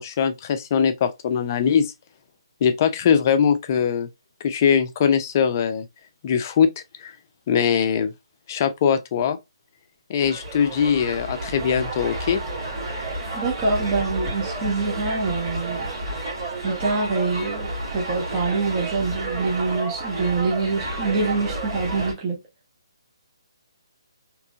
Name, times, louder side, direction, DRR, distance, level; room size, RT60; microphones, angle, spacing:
voice 1, 0.0-1.9 2.6-4.1 4.4-5.9 6.2-7.1 7.5-8.1 8.5-9.4 10.1-12.4, left 7 dB, 35° left, 0.5 m, -21 dB
sound 1, 10.2-22.1, right 2 dB, 50° right, 2.2 m, -30 dB
voice 2, 13.3-15.9 16.6-22.4, right 3 dB, 20° right, 1.0 m, -25 dB
3.7 x 3.0 x 2.4 m
figure-of-eight pair, 150°, 3 cm